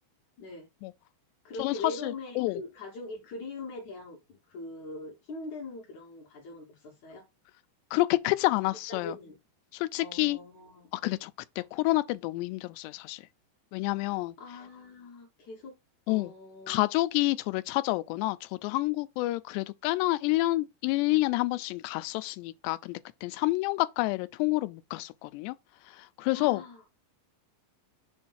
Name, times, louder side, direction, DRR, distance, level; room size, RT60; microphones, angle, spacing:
voice 1, 0.4-0.7 1.4-7.3 8.9-9.4 10.0-10.9 14.0-15.8 16.1-16.8 26.3-27.0, left 2 dB, 60° left, 2.2 m, -42 dB
voice 2, 1.6-2.6 7.9-9.2 9.7-10.4 10.9-11.3 11.6-13.2 13.7-14.4 16.1-16.3 16.7-25.6 25.9-26.6, left 19 dB, 90° left, 2.7 m, -29 dB
7.1 x 2.5 x 5.5 m
omnidirectional pair, 4.8 m